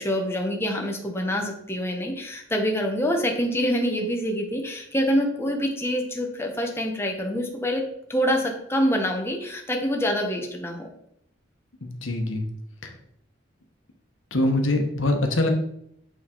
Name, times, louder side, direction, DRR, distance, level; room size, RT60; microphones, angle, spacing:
voice 1, 0.0-7.8 8.1-10.9, equal, 15° left, 1 dB, 1.0 m, -26 dB
voice 2, 11.8-12.4 14.3-15.5, left 1 dB, 80° left, 3 dB, 1.1 m, -23 dB
8.4 x 3.6 x 4.5 m, 0.74 s
head